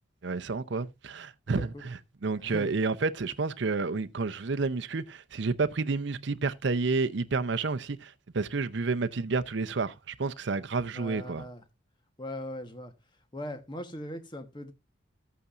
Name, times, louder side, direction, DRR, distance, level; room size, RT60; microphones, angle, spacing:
voice 1, 0.2-11.4, right 4 dB, 60° right, 0.6 m, -30 dB
voice 2, 1.5-1.8 2.4-2.7 10.9-11.6 12.2-12.9 13.3-14.7, equal, 20° left, 1.1 m, -39 dB
13.5 x 8.5 x 2.5 m
head